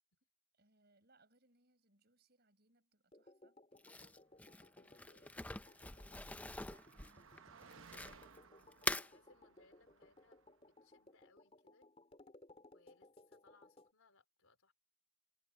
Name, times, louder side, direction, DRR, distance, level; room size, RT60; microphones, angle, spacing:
voice 1, 0.5-3.6 6.3-9.1, right 2 dB, 50° right, 5.3 m, -73 dB
sound 1, 3.1-13.9, left 2 dB, 30° left, 3.0 m, -63 dB
Crumpling crinkling, 3.8-8.4 8.7-9.1, left 2 dB, 5° left, 0.4 m, -44 dB
voice 2, 4.7-5.4 8.9-11.9 12.7-14.7, left 3 dB, 90° left, 4.5 m, -70 dB
Car passing by, 4.7-10.7, right 5 dB, 70° right, 0.9 m, -63 dB
head